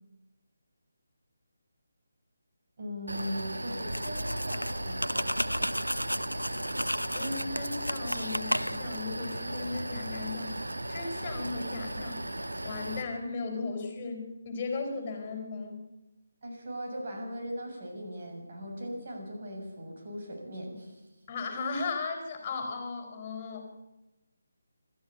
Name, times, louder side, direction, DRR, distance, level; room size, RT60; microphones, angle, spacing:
voice 1, 2.8-5.7 16.4-21.0, equal, 40° right, 1 dB, 7.1 m, -39 dB
sound 1, 3.1-13.0, right 1 dB, 70° right, 1.9 m, -36 dB
sound 2, 3.9-9.0, equal, 90° left, 0.9 m, -33 dB
voice 2, 7.1-12.2 12.6-15.8 21.3-23.6, left 4 dB, 20° left, 3 dB, 4.5 m, -36 dB
28.0 x 13.5 x 8.5 m, 1.0 s
figure-of-eight pair, 150°, 0 cm